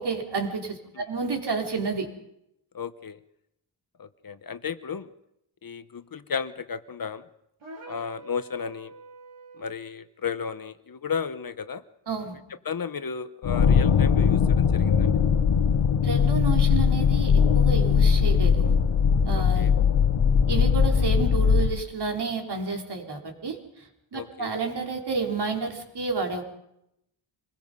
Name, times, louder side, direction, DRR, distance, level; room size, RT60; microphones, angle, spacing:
voice 1, 0.0-2.1 12.1-12.4 16.0-18.7 19.2-19.7 20.5-23.6 24.1-26.4, right 4 dB, 55° right, 2 dB, 3.9 m, -30 dB
voice 2, 2.7-3.2 4.0-5.1 5.6-7.2 7.9-8.9 9.6-11.8 12.6-15.1 19.3-19.7 24.1-24.6, left 6 dB, 45° left, 12 dB, 0.9 m, -34 dB
sound 1, 7.6-9.8, right 2 dB, 75° right, 6.4 m, -46 dB
sound 2, 13.4-21.7, left 6 dB, 80° left, 1.3 m, -20 dB
26.0 x 21.0 x 5.4 m, 0.80 s
wide cardioid pair, 150°, 49 cm